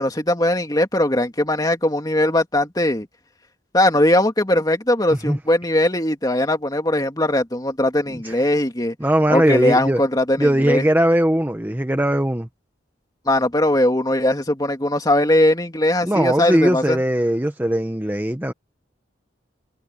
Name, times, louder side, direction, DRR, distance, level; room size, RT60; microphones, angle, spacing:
voice 1, 0.0-3.1 3.7-9.0 9.3-10.9 13.3-17.0, left 1 dB, 20° left, 2.5 m, -20 dB
voice 2, 8.1-8.4 9.0-10.0 10.4-12.5 16.0-18.5, right 1 dB, 10° right, 1.1 m, -19 dB
head